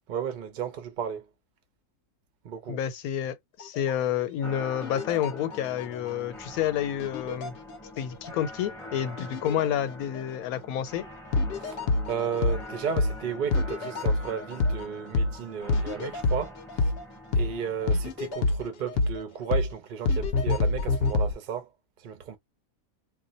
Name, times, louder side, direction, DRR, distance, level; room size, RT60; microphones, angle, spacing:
voice 1, 0.1-1.2 2.4-2.8 11.6-16.9 17.3-21.7 22.0-22.4, right 7 dB, 60° right, 0.5 m, -34 dB
voice 2, 2.7-7.6 8.0-11.0, left 10 dB, 90° left, 1.1 m, -29 dB
sound 1, 3.6-3.9 4.8-6.1 7.0-8.0 8.2-8.3 9.2-9.7 10.1-10.2 11.3-12.6 13.0-13.2 13.5-14.8 15.1-15.4 15.7-17.0 17.3-17.5 17.9-19.2 19.5-19.7 20.1-21.3, left 3 dB, 60° left, 0.6 m, -26 dB
sound 2, 4.4-18.3, left 1 dB, 5° left, 0.7 m, -44 dB
2.4 x 2.1 x 3.9 m
omnidirectional pair, 1.5 m